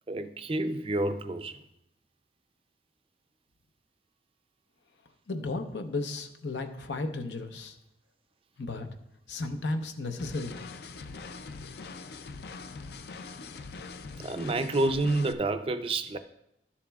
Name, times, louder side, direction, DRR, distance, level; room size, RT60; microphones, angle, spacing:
voice 1, 0.1-1.6 14.2-16.2, right 2 dB, 30° right, 10 dB, 0.4 m, -29 dB
voice 2, 5.3-7.8 8.6-8.9 9.3-10.6, left 2 dB, 90° left, 6 dB, 0.8 m, -34 dB
sound 1, 10.2-15.3, left 4 dB, 60° left, 0.4 m, -43 dB
12.5 x 7.1 x 2.3 m, 0.81 s
head